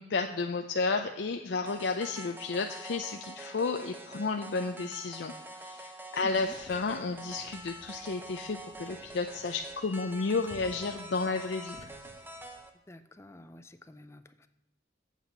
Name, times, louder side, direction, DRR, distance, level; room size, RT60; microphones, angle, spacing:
voice 1, 0.0-5.3 5.6-11.8, left 4 dB, 70° left, 4 dB, 0.5 m, -32 dB
sound 1, 1.7-12.7, right 2 dB, 10° right, 0.8 m, -46 dB
sound 2, 6.2-12.6, left 1 dB, 35° left, 1.1 m, -55 dB
voice 2, 6.2-6.6 12.9-14.5, left 1 dB, 15° left, 10 dB, 0.4 m, -50 dB
8.1 x 7.3 x 4.4 m, 0.97 s
head